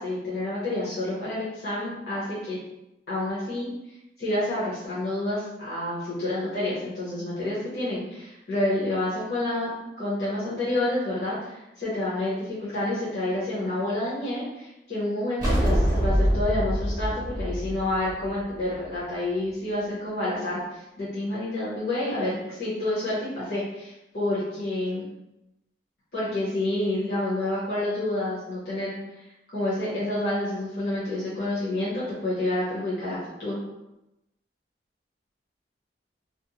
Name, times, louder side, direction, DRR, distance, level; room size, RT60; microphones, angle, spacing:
voice 1, 0.0-2.6 3.1-3.7 4.2-25.0 26.1-29.2 29.5-33.6, left 1 dB, 65° left, -10 dB, 0.9 m, -29 dB
sound 1, 15.4-18.8, equal, 20° right, 0.7 m, -25 dB
2.5 x 2.0 x 2.9 m, 0.91 s
head